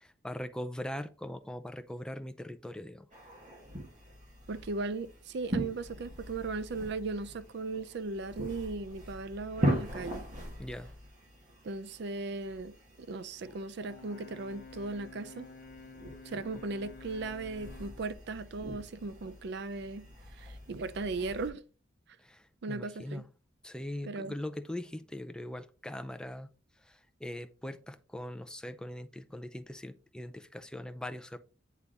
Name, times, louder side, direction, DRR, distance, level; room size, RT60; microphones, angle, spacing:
voice 1, 0.2-3.1 10.6-10.9 22.2-23.2 23.6-26.5 26.9-31.4, left 1 dB, 5° left, 0.4 m, -41 dB
sound 1, 3.1-21.5, equal, 40° right, 1.6 m, -41 dB
voice 2, 4.5-10.2 11.6-15.5 16.3-20.1 20.4-21.6 22.6-23.2 24.1-24.3, right 3 dB, 60° right, 0.4 m, -37 dB
Brass instrument, 13.8-18.1, left 3 dB, 60° left, 0.8 m, -51 dB
8.3 x 3.4 x 3.9 m
head